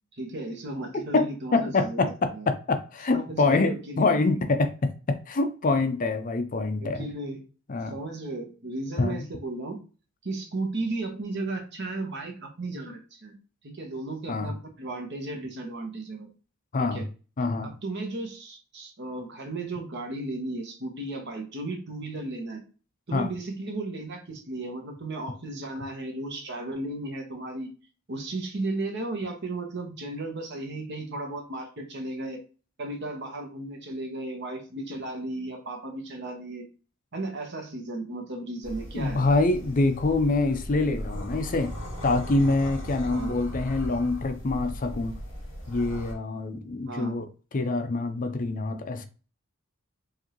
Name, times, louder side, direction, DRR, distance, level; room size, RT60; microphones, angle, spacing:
voice 1, 0.1-2.5 3.1-4.2 6.8-7.4 7.9-9.8 10.2-13.3 13.6-16.3 16.8-17.0 17.6-22.6 23.1-27.7 28.1-32.4 32.8-36.7 37.1-39.2 43.1-43.4 46.9-47.2, right 2 dB, 55° right, 1.0 m, -35 dB
voice 2, 1.1-7.1 7.7-8.0 9.0-9.2 14.3-14.5 16.7-17.0 17.4-17.7 23.1-23.3 38.9-41.7 42.0-45.2 45.7-49.1, left 3 dB, 40° left, 0.5 m, -25 dB
sound 1, 38.6-46.1, equal, 25° left, 1.9 m, -37 dB
4.9 x 2.6 x 2.9 m
head